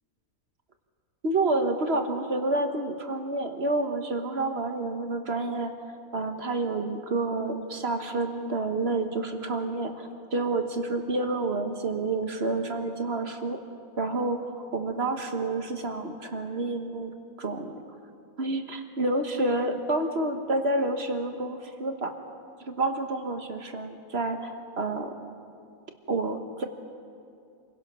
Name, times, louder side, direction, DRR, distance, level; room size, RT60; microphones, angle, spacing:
voice 1, 1.2-5.7 6.1-13.6 14.0-14.4 14.7-17.1 17.4-17.8 18.4-22.1 22.7-25.1 26.1-26.7, right 2 dB, 45° right, 6 dB, 1.4 m, -29 dB
27.0 x 16.5 x 6.1 m, 2.5 s
omnidirectional pair, 1.6 m